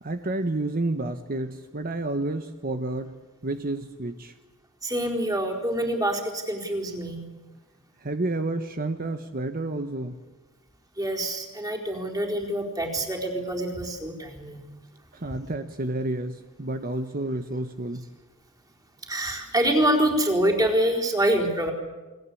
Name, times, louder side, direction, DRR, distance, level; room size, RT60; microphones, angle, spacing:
voice 1, 0.0-3.1 3.4-4.3 8.0-10.2 15.1-18.1, right 2 dB, 40° right, 8 dB, 1.2 m, -30 dB
voice 2, 4.8-7.2 11.0-14.6 19.1-21.7, right 1 dB, 15° right, 1 dB, 4.3 m, -26 dB
29.0 x 22.0 x 8.6 m, 1.2 s
head